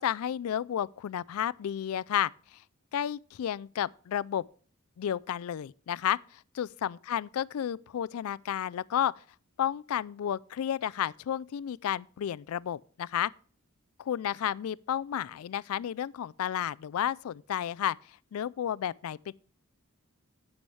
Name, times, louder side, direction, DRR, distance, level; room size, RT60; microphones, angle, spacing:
voice 1, 0.0-2.3 2.9-4.4 5.0-9.1 9.6-13.3 14.0-18.0 18.3-19.3, left 10 dB, 85° left, 0.3 m, -32 dB
11.5 x 8.3 x 3.2 m
head